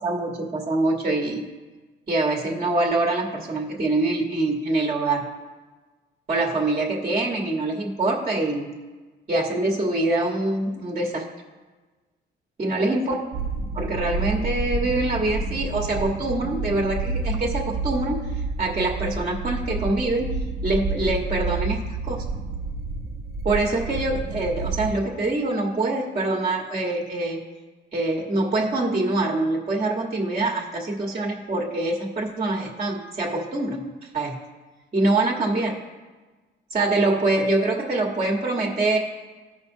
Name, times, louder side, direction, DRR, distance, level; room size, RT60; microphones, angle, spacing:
voice 1, 0.0-1.5 2.1-5.3 6.3-8.8 9.3-11.3 12.6-13.1 13.7-20.4 20.6-22.2 23.4-27.4 27.9-34.4 34.9-35.8 36.7-39.0, right 2 dB, 30° right, -1 dB, 1.3 m, -24 dB
sound 1, 13.3-24.9, right 3 dB, 55° right, 0.8 m, -29 dB
15.5 x 5.7 x 2.7 m, 1.3 s
cardioid pair, 90°, 20 cm